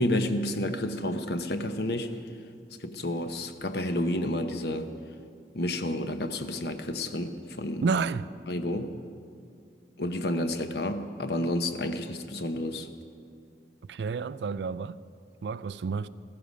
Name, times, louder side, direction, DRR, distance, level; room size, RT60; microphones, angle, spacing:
voice 1, 0.0-2.1 2.8-4.9 5.5-7.8 8.5-8.9 10.0-12.9, left 1 dB, 65° left, 8 dB, 0.8 m, -30 dB
voice 2, 7.8-8.3 13.9-15.0 15.4-16.1, right 5 dB, 75° right, 16 dB, 0.4 m, -30 dB
15.5 x 13.5 x 5.2 m, 2.3 s
head